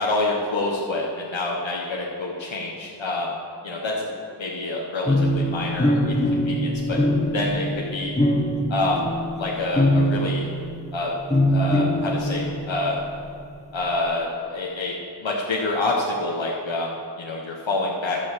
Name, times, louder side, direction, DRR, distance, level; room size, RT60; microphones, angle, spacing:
voice 1, 0.0-3.3 3.6-4.1 4.4-7.0 7.3-8.1 8.7-9.1 9.4-10.4 10.9-11.2 11.5-13.0 13.7-14.9 15.2-18.2, left 2 dB, 80° left, -2 dB, 1.2 m, -27 dB
sound 1, 5.1-10.9 11.3-13.2, left 1 dB, 15° left, 1.0 m, -23 dB
12.0 x 7.1 x 6.6 m, 2.6 s
wide cardioid pair, 65°, 45 cm